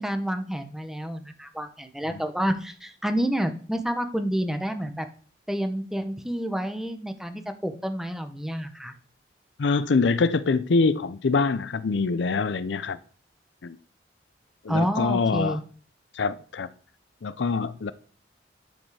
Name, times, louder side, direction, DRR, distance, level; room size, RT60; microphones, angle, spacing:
voice 1, 0.0-5.1 5.5-8.9 14.7-15.6, equal, ahead, 0.8 m, -29 dB
voice 2, 9.6-13.0 13.6-13.8 14.6-15.6 16.2-16.7 17.2-17.9, left 4 dB, 80° left, 0.5 m, -24 dB
10.5 x 5.3 x 4.8 m
head